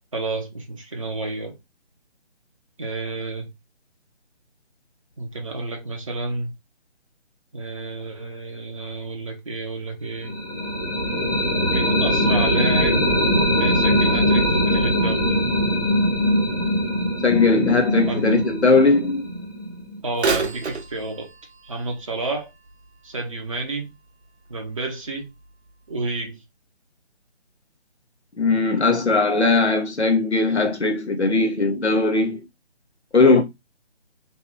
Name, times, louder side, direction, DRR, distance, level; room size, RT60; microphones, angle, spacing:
voice 1, 0.1-1.6 2.8-3.5 5.2-6.5 7.5-10.4 11.6-13.1 13.6-15.3 18.1-18.3 20.0-21.3 21.6-22.5 23.0-23.9 24.5-25.3 25.9-26.4, right 2 dB, 30° right, 0.5 m, -30 dB
sound 1, 10.2-20.0, equal, 20° left, 0.5 m, -21 dB
voice 2, 17.2-19.3 28.4-32.4 33.1-33.4, left 3 dB, 75° left, 1.1 m, -19 dB
Bird vocalization bird call bird song / Telephone, 20.1-24.0 24.5-24.6 25.4-25.5 26.2-26.3, right 4 dB, 75° right, 0.6 m, -31 dB
3.0 x 2.7 x 2.3 m
figure-of-eight pair, 150°, 33 cm